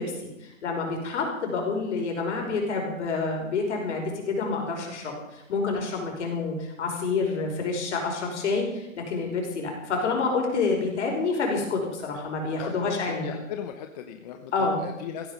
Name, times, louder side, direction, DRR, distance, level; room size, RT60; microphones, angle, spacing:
voice 1, 0.0-13.4 14.5-14.8, left 4 dB, 60° left, 1 dB, 5.6 m, -28 dB
voice 2, 12.6-14.5 14.8-15.3, left 9 dB, 30° left, 6 dB, 0.9 m, -38 dB
15.5 x 15.0 x 5.2 m, 0.89 s
hypercardioid pair, 145°, 40 cm